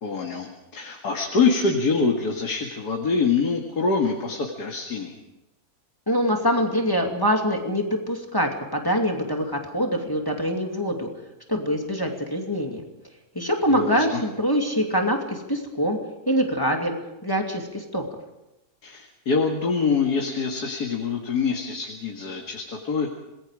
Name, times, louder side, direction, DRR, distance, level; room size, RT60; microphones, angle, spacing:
voice 1, 0.0-5.1 13.7-14.2 18.8-23.1, left 4 dB, 90° left, 1 dB, 2.5 m, -25 dB
voice 2, 6.1-11.1 11.5-12.8 13.3-16.0 16.3-16.9 17.2-18.0, equal, 15° left, 2 dB, 2.5 m, -24 dB
26.5 x 21.0 x 5.0 m, 0.94 s
omnidirectional pair, 1.6 m